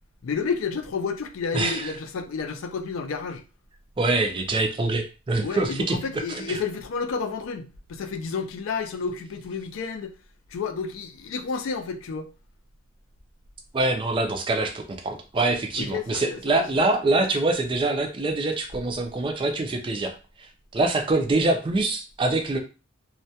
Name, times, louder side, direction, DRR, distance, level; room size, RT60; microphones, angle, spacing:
voice 1, 0.2-3.4 5.4-10.2 10.5-12.3 15.8-16.7, left 5 dB, 85° left, 0.4 m, -31 dB
voice 2, 1.5-1.9 4.0-6.6 13.7-20.1 20.4-22.6, right 2 dB, 25° right, 0.3 m, -25 dB
2.2 x 2.1 x 2.7 m
head